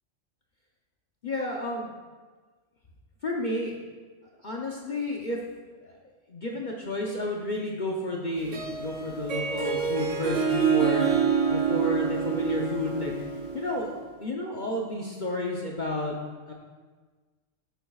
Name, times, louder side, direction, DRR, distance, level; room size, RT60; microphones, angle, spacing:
voice 1, 1.2-1.9 3.2-3.8 4.4-5.4 5.8-5.9 6.3-11.1 11.5-13.1 13.5-16.2 16.5-16.6, left 1 dB, 45° left, -1 dB, 0.8 m, -31 dB
Harp, 8.4-13.9, right 7 dB, 70° right, 1.3 m, -27 dB
9.1 x 8.7 x 2.4 m, 1.4 s
omnidirectional pair, 1.3 m